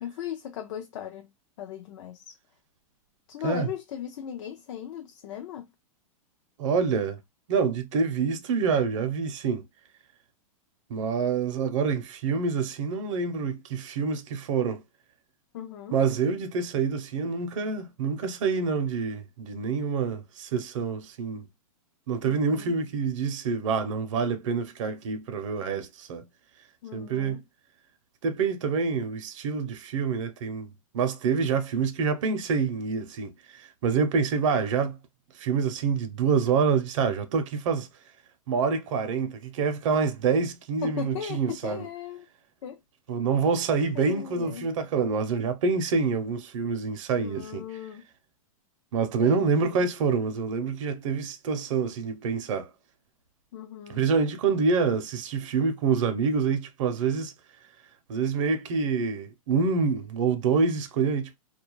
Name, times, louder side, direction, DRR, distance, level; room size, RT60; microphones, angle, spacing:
voice 1, 0.0-1.3 1.6-2.4 3.3-5.7 15.5-16.0 22.2-22.7 26.8-27.4 40.8-42.3 42.6-42.8 43.9-44.7 47.2-48.1 49.2-49.9 53.5-54.0, left 10 dB, 55° left, 0.4 m, -38 dB
voice 2, 6.6-7.2 7.5-9.6 10.9-14.8 15.9-21.4 22.1-26.2 26.9-27.4 28.2-35.0 35.3-37.9 38.5-41.9 43.1-47.6 48.9-52.7 53.9-57.3 58.1-61.4, right 5 dB, 60° right, 0.6 m, -27 dB
2.3 x 2.1 x 2.9 m
hypercardioid pair, 145°, 18 cm